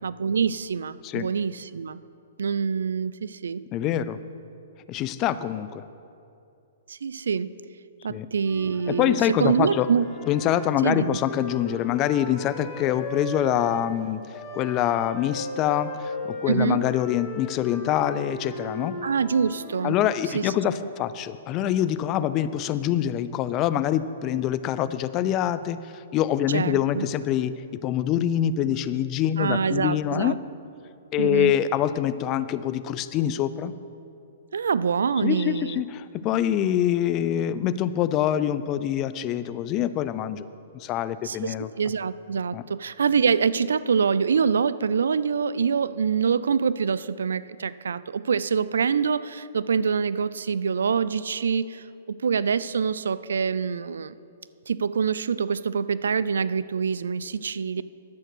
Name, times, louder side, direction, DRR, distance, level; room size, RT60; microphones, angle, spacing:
voice 1, 0.0-2.0 2.4-3.6 6.9-7.5 8.0-10.1 10.8-11.2 16.5-16.8 19.0-20.0 20.3-20.5 26.5-27.1 29.4-30.4 31.2-31.5 34.5-35.8 41.2-54.2 54.7-57.8, right 6 dB, 85° right, 17 dB, 0.3 m, -25 dB
voice 2, 3.7-4.2 4.9-5.8 8.1-8.3 8.9-9.9 10.3-19.0 19.8-30.4 31.1-33.7 35.2-40.5 40.7-41.7 42.5-42.6, left 11 dB, 30° left, 14 dB, 0.4 m, -25 dB
Wind instrument woodwind instrument, 8.4-13.8 14.3-20.2, left 1 dB, 15° left, 2.3 m, -37 dB
10.5 x 7.8 x 6.1 m, 2.6 s
hypercardioid pair, 135°, 0 cm